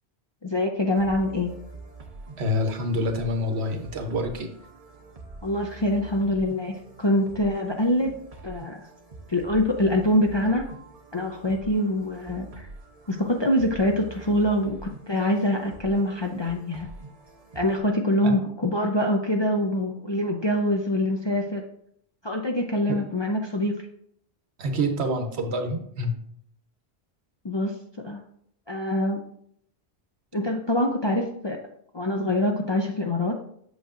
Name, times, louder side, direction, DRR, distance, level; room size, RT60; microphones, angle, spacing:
voice 1, 0.4-1.5 5.4-8.1 8.4-8.8 9.3-10.7 11.1-12.7 13.1-16.9 17.5-21.6 22.2-23.8 27.4-27.7 28.0-28.2 28.7-29.2 30.3-31.6 31.9-33.3, left 1 dB, 35° left, 2 dB, 0.4 m, -24 dB
sound 1, 0.9-17.8, right 3 dB, 40° right, 0.8 m, -45 dB
voice 2, 2.4-4.5 18.2-18.4 22.9-23.0 24.6-26.2, equal, 75° right, 5 dB, 1.2 m, -27 dB
8.0 x 6.4 x 2.5 m, 0.70 s
omnidirectional pair, 1.1 m